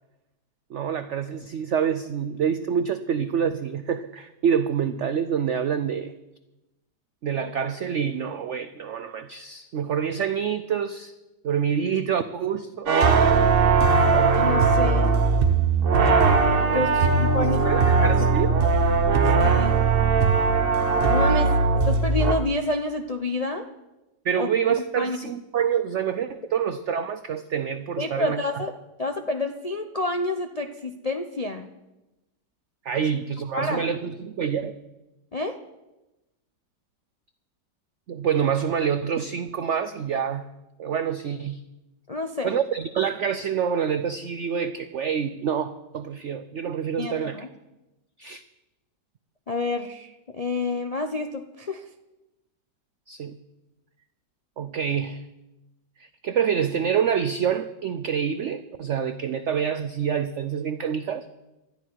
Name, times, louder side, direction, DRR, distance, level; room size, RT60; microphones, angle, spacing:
voice 1, 0.7-6.1 7.2-11.1 11.4-12.9 16.6-18.5 24.2-28.6 32.8-34.7 38.1-40.5 40.8-41.6 42.4-47.5 48.2-48.4 53.1-53.4 54.6-55.2 56.0-61.3, right 8 dB, 65° right, 11 dB, 0.7 m, -27 dB
sound 1, 12.9-22.3, right 4 dB, 40° right, 0.9 m, -19 dB
voice 2, 14.1-15.1 16.7-16.9 17.2-18.1 19.3-19.8 21.1-21.6 21.8-23.7 24.4-24.5 25.0-25.2 28.0-28.7 29.0-31.7 33.1-33.2 33.5-33.9 35.3-35.6 42.1-42.5 47.0-47.5 49.5-51.9, left 2 dB, 65° left, 4 dB, 0.3 m, -29 dB
19.5 x 13.0 x 4.6 m, 1.0 s
omnidirectional pair, 1.9 m